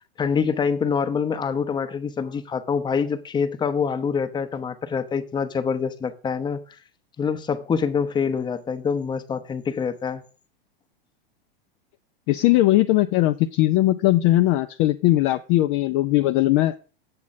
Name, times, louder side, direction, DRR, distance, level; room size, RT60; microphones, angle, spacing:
voice 1, 0.2-6.6 7.2-10.2, left 6 dB, 15° left, 0.7 m, -25 dB
voice 2, 12.3-16.7, left 16 dB, 40° left, 0.4 m, -19 dB
7.5 x 7.2 x 4.1 m
hypercardioid pair, 125°, 30 cm